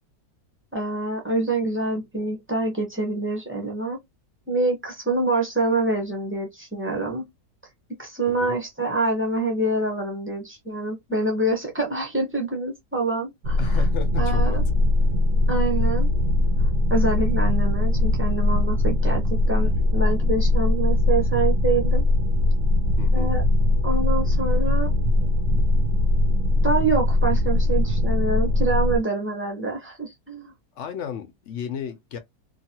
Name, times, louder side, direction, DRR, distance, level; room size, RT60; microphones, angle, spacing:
voice 1, 0.7-4.0 4.5-7.3 8.0-13.8 14.2-14.6 15.5-16.1 16.9-22.0 23.1-23.4 23.8-24.9 26.6-30.5, right 2 dB, 15° right, 0.4 m, -26 dB
sound 1, 13.4-29.0, left 2 dB, 75° right, 0.7 m, -21 dB
voice 2, 13.6-14.6 23.0-23.3 30.7-32.2, left 7 dB, 65° left, 0.7 m, -33 dB
2.9 x 2.4 x 2.8 m
omnidirectional pair, 1.9 m